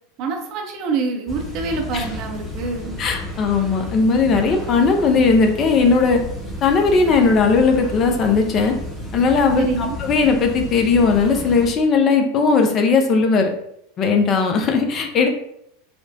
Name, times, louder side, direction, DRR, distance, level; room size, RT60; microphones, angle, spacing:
voice 1, 0.2-3.0 9.6-10.0, right 4 dB, 45° right, 2 dB, 0.6 m, -26 dB
sound 1, 1.3-11.7, left 1 dB, 15° left, 0.8 m, -32 dB
voice 2, 3.0-6.2 6.6-8.7 9.1-9.7 10.0-13.5 14.0-15.3, left 4 dB, 35° left, 4 dB, 0.5 m, -17 dB
4.2 x 2.1 x 2.6 m, 0.74 s
figure-of-eight pair, 80°, 0 cm